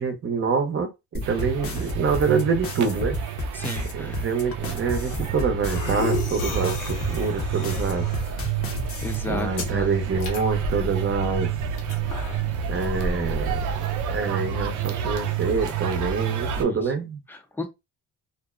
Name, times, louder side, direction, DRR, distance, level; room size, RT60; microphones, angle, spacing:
voice 1, 0.0-3.2 3.9-8.1 9.3-11.5 12.7-13.6 14.1-17.2, right 5 dB, 45° right, 0.8 m, -26 dB
sound 1, 1.1-9.1, left 2 dB, 50° left, 0.8 m, -32 dB
sound 2, 1.2-16.6, right 9 dB, 75° right, 0.5 m, -30 dB
voice 2, 3.5-4.3 9.0-9.9 16.6-16.9 17.3-17.6, left 2 dB, 5° left, 0.6 m, -34 dB
sound 3, 4.6-14.1, left 2 dB, 85° left, 1.0 m, -34 dB
2.6 x 2.1 x 2.4 m
cardioid pair, 90°, 30 cm